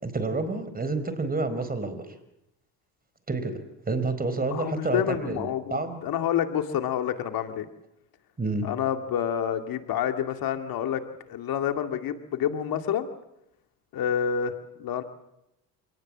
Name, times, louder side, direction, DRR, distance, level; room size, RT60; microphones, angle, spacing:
voice 1, 0.0-2.0 3.3-3.6 3.9-6.0 8.4-8.7, right 3 dB, 20° right, 12 dB, 4.4 m, -29 dB
voice 2, 4.5-7.7 8.6-11.0 11.3-13.1 13.9-15.0, left 9 dB, 60° left, 7 dB, 2.3 m, -28 dB
27.5 x 18.5 x 7.5 m, 0.85 s
supercardioid pair, 80°, 41 cm